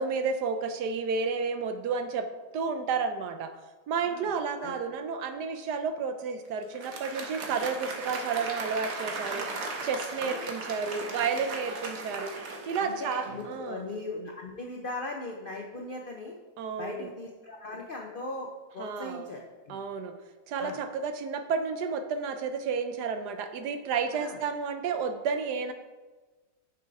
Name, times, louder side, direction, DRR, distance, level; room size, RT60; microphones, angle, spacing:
voice 1, 0.0-2.3 2.5-3.5 3.9-9.5 9.8-12.3 12.7-13.9 16.6-17.1 18.8-19.3 19.7-20.1 20.5-25.7, right 5 dB, 70° right, 8 dB, 1.1 m, -31 dB
Applause, 6.6-13.6, right 3 dB, 55° right, 1.3 m, -37 dB
voice 2, 10.2-10.5 12.8-16.3 16.8-19.8 20.6-20.8 24.1-24.4, left 2 dB, 75° left, 0 dB, 0.5 m, -39 dB
6.2 x 5.8 x 4.7 m, 1.3 s
omnidirectional pair, 2.0 m